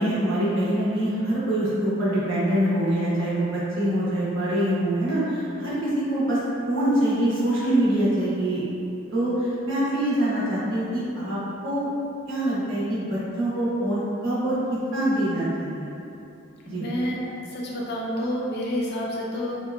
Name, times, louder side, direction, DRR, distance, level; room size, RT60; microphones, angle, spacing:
voice 1, 0.0-6.4 6.7-8.6 9.1-9.3 9.6-11.4 11.6-11.9 12.3-14.6 14.9-15.9 16.6-16.9, right 1 dB, 60° right, -9 dB, 0.7 m, -24 dB
voice 2, 16.7-17.2 17.5-19.6, equal, 50° left, -4 dB, 0.4 m, -29 dB
2.8 x 2.1 x 2.3 m, 2.8 s
head